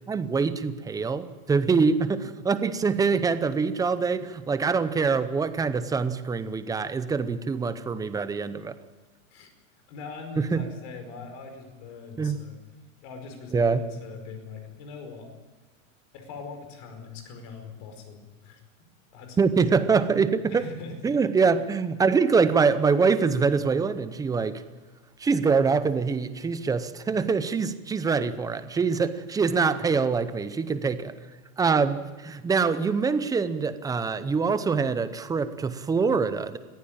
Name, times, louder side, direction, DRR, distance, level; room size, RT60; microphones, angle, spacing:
voice 1, 0.1-8.8 10.4-10.6 12.2-12.4 13.5-13.8 19.4-20.6 21.0-24.6 25.2-31.1 31.6-36.6, right 5 dB, 10° right, 12 dB, 0.7 m, -24 dB
voice 2, 9.9-12.6 13.0-15.3 16.1-18.6 19.1-19.4 19.7-19.9 20.5-20.9, left 5 dB, 50° left, 6 dB, 5.0 m, -41 dB
21.5 x 15.0 x 8.8 m, 1.2 s
supercardioid pair, 145°, 41 cm